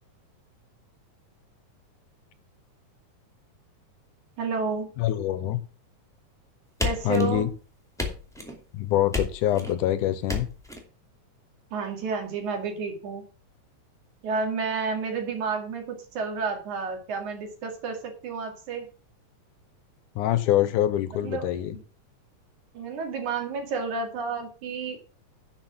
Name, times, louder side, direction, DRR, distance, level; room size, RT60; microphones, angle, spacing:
voice 1, 4.4-4.9 6.8-7.4 11.7-13.3 14.2-18.9 21.2-21.8 22.7-25.0, right 5 dB, 65° right, 3 dB, 3.5 m, -31 dB
voice 2, 5.0-5.6 7.0-7.5 8.7-10.5 20.2-21.8, left 13 dB, 80° left, 13 dB, 2.2 m, -25 dB
sound 1, 6.8-7.6 8.0-8.6 9.1-9.8 10.3-10.8, left 3 dB, ahead, 1.9 m, -31 dB
10.5 x 6.2 x 6.0 m, 0.37 s
omnidirectional pair, 3.8 m